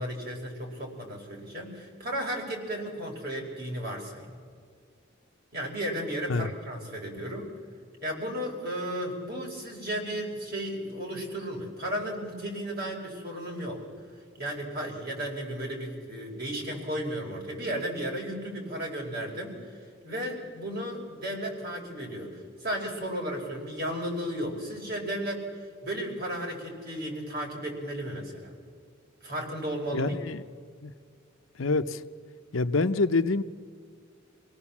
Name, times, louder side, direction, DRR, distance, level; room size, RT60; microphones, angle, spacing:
voice 1, 0.0-4.3 5.5-7.5 8.0-13.8 14.4-19.6 20.0-25.5 25.8-28.5 29.2-30.1, equal, 50° right, -1 dB, 5.2 m, -34 dB
voice 2, 29.9-30.4 30.8-30.9 31.6-32.0 32.5-33.4, left 3 dB, 90° left, 10 dB, 0.8 m, -26 dB
26.5 x 18.0 x 7.2 m, 2.1 s
head